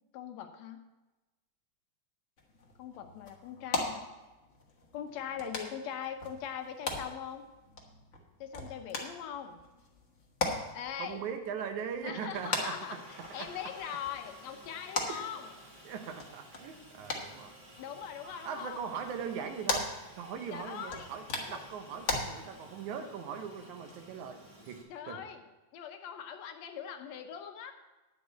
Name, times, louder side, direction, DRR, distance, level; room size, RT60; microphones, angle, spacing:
voice 1, 0.1-0.8 2.8-4.1 4.9-7.4 8.4-9.6 10.7-11.2 12.0-13.0 13.3-15.5 17.8-18.8 20.5-21.1 21.5-21.6 24.9-25.4 25.7-27.7, left 8 dB, 75° left, 7 dB, 1.8 m, -41 dB
sound 1, 2.4-22.2, left 3 dB, 45° left, 0.9 m, -40 dB
voice 2, 11.0-13.5 15.1-15.3 15.8-17.5 18.4-19.9 20.2-24.4 24.7-25.2, right 7 dB, 80° right, 7 dB, 2.4 m, -40 dB
Aircraft, 12.3-24.8, right 1 dB, 20° right, 1.4 m, -54 dB
10.5 x 5.2 x 8.1 m, 1.1 s
omnidirectional pair, 3.3 m